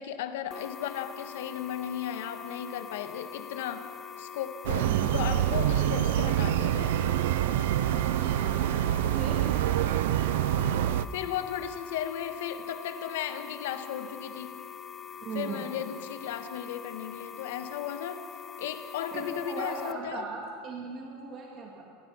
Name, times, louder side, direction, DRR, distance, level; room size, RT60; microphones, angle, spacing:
voice 1, 0.0-3.9 4.2-7.1 11.1-14.6 15.3-18.3 18.6-20.2, left 10 dB, 85° left, 9 dB, 1.6 m, -35 dB
sound 1, 0.5-19.9, left 7 dB, 20° left, 0.7 m, -44 dB
sound 2, 4.6-11.0, right 12 dB, 85° right, 0.6 m, -26 dB
voice 2, 4.8-5.1 7.9-8.8 9.1-9.4 15.2-15.7 19.1-21.8, right 4 dB, 30° right, -1 dB, 2.2 m, -38 dB
29.5 x 15.5 x 5.8 m, 2.3 s
supercardioid pair, 175°, 0 cm